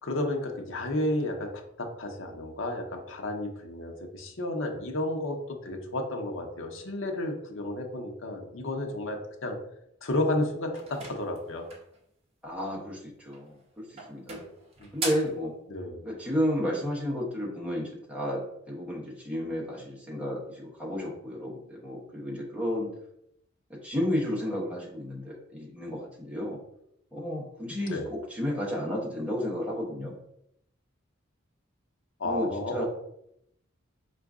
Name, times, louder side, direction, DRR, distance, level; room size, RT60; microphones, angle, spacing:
voice 1, 0.0-9.6 10.0-11.7 14.8-14.9 15.7-16.0 27.9-28.1 32.2-32.9, left 1 dB, 70° left, 2 dB, 0.8 m, -32 dB
Front Door Open Close Interior, 10.7-12.0 13.2-13.6 14.0-15.4, right 3 dB, 30° right, 0.8 m, -38 dB
voice 2, 12.4-14.3 14.9-15.5 16.0-22.9 23.7-26.6 27.1-30.1 32.2-32.9, equal, 5° right, -4 dB, 1.1 m, -32 dB
4.7 x 2.5 x 3.5 m, 0.78 s
head